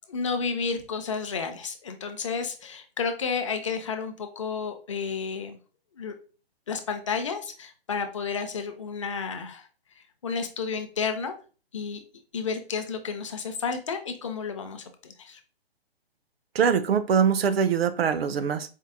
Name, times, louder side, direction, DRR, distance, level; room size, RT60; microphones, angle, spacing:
voice 1, 0.1-5.6 5.9-6.2 6.7-9.7 10.0-11.4 11.7-12.0 12.3-15.4, left 5 dB, 30° left, 6 dB, 0.4 m, -31 dB
voice 2, 16.5-18.7, right 7 dB, 70° right, 12 dB, 0.6 m, -23 dB
4.5 x 2.0 x 3.5 m, 0.36 s
hypercardioid pair, 160°, 32 cm